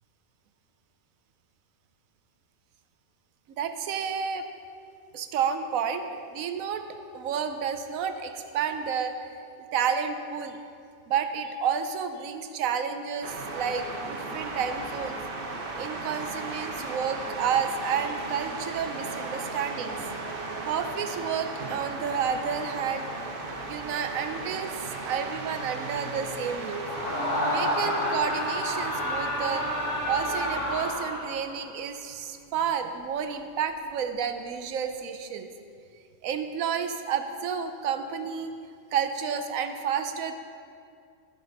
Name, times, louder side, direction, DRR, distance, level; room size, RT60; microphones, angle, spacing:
voice 1, 3.6-4.4 5.1-6.8 7.1-9.3 9.7-10.6 11.1-15.2 15.8-20.0 20.6-23.3 23.7-24.8 25.0-26.9 27.5-29.6 30.1-35.5 36.2-38.5 38.9-40.3, right 7 dB, 80° right, 8 dB, 1.0 m, -30 dB
sound 1, 13.2-30.9, right 3 dB, 45° right, 0.9 m, -36 dB
Screaming, 26.8-31.6, left 1 dB, 85° left, 2.5 m, -29 dB
14.5 x 5.2 x 4.0 m, 2.4 s
omnidirectional pair, 1.5 m